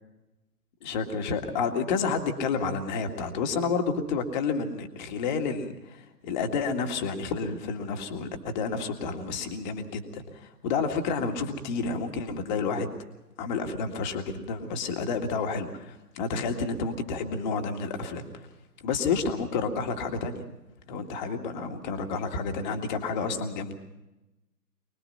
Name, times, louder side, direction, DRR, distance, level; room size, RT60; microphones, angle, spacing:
voice 1, 0.8-12.9 13.4-18.2 18.8-20.4 20.9-23.7, left 4 dB, 30° left, 5 dB, 2.1 m, -30 dB
24.5 x 20.5 x 5.6 m, 0.99 s
figure-of-eight pair, 130°, 48 cm